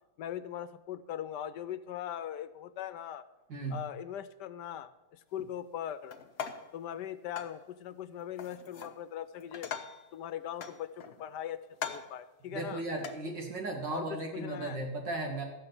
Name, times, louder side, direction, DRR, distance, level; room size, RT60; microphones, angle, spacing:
voice 1, 0.2-3.2 3.7-6.2 6.7-9.7 10.1-11.6 11.9-12.8 13.9-14.8, left 10 dB, 75° left, 12 dB, 1.3 m, -40 dB
sound 1, 6.1-6.8 7.4-7.6 8.4-9.0 9.3-10.1 10.6-11.3 11.7-12.2 13.0-13.2, left 7 dB, 50° left, 0.8 m, -41 dB
voice 2, 12.5-15.4, right 2 dB, 85° right, 0 dB, 3.0 m, -36 dB
14.0 x 5.7 x 8.1 m, 0.99 s
omnidirectional pair, 1.9 m